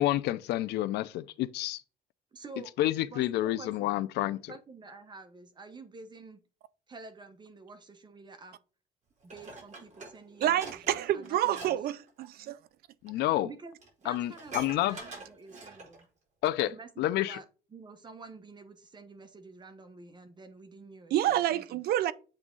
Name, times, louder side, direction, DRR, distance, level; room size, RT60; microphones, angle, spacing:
voice 1, 0.0-1.8 2.8-4.5 13.0-13.5 14.0-15.0 16.4-16.7 17.0-17.4, left 14 dB, 80° left, 0.6 m, -29 dB
voice 2, 2.3-2.7 3.1-4.1 4.5-6.4 6.9-8.6 9.2-11.8 13.4-16.1 16.6-17.4 17.7-21.8, right 3 dB, 25° right, 1.1 m, -49 dB
Dishes pots and pans, 9.3-11.7 12.0-12.3 13.1-13.2 13.5-13.6 13.8-16.0 16.5-16.6, right 3 dB, 45° right, 3.6 m, -45 dB
voice 3, 10.4-12.6 21.1-22.1, right 12 dB, 65° right, 0.5 m, -28 dB
7.7 x 3.6 x 3.8 m
cardioid pair, 110°, 17 cm